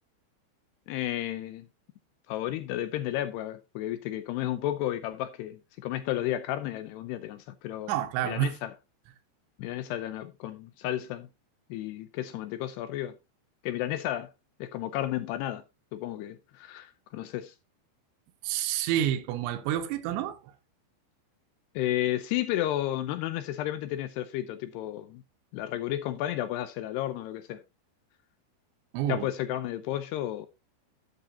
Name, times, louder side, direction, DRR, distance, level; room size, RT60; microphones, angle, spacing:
voice 1, 0.9-1.7 2.3-7.9 8.2-8.7 9.6-11.3 11.7-13.2 13.6-14.3 14.6-15.6 15.9-17.5 21.8-25.2 25.5-27.6 29.1-30.5, left 13 dB, 80° left, 2.5 m, -32 dB
voice 2, 7.9-8.5 18.4-20.4 28.9-29.3, right 11 dB, 80° right, 3.3 m, -28 dB
13.0 x 8.1 x 2.8 m
omnidirectional pair, 5.2 m